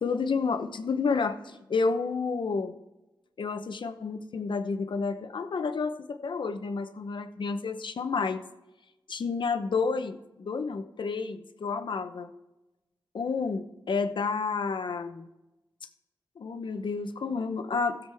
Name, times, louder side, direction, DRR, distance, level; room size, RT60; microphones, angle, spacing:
voice 1, 0.0-2.7 3.4-8.4 9.1-12.3 13.1-15.3 16.4-18.0, left 4 dB, 75° left, 9 dB, 0.8 m, -30 dB
16.0 x 7.3 x 3.5 m, 0.99 s
wide cardioid pair, 100°, 8 cm